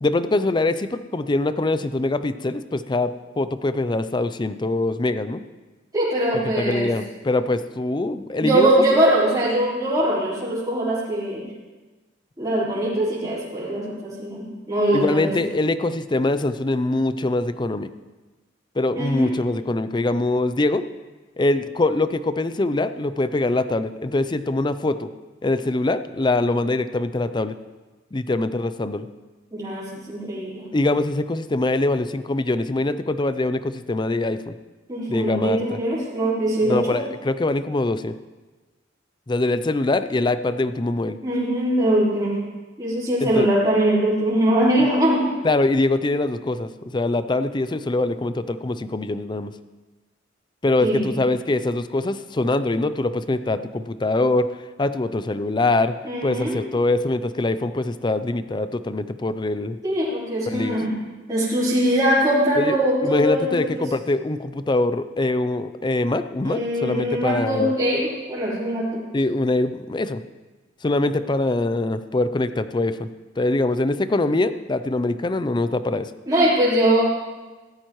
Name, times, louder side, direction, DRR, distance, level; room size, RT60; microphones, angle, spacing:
voice 1, 0.0-5.4 6.3-8.7 14.9-17.9 18.8-20.8 21.4-25.1 25.4-27.6 28.1-29.1 30.7-34.5 35.1-35.8 36.7-38.1 39.3-41.2 43.2-43.5 45.4-49.5 50.6-54.5 54.8-56.0 56.2-59.8 60.5-60.8 62.6-62.8 63.0-67.7 69.1-70.2 70.8-73.1 73.4-76.1, left 2 dB, 25° left, 12 dB, 0.5 m, -23 dB
voice 2, 5.9-6.9 8.4-11.4 12.4-15.3 18.9-19.3 29.5-30.6 34.9-37.0 41.2-42.4 42.8-45.3 50.8-51.1 56.0-56.6 59.8-60.9 61.3-63.5 66.4-69.0 76.3-77.0, right 1 dB, 20° right, -10 dB, 4.4 m, -22 dB
16.0 x 13.5 x 3.1 m, 1.2 s
head